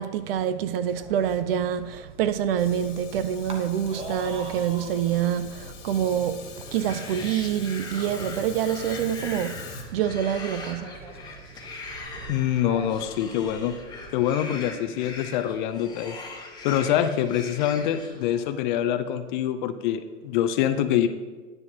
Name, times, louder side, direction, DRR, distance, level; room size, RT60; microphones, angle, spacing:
voice 1, 0.0-6.4 6.7-9.6 9.9-10.9, right 9 dB, 50° right, 0.6 m, -26 dB
sound 1, 1.0-14.2, right 1 dB, 15° right, 0.9 m, -44 dB
Fire, 2.6-9.8, left 5 dB, 70° left, 2.0 m, -43 dB
sound 2, 6.6-18.6, left 3 dB, 10° left, 1.2 m, -41 dB
voice 2, 12.3-13.7 14.1-16.2 16.6-21.1, left 10 dB, 40° left, 0.6 m, -25 dB
9.8 x 9.2 x 2.8 m
hypercardioid pair, 130°, 37 cm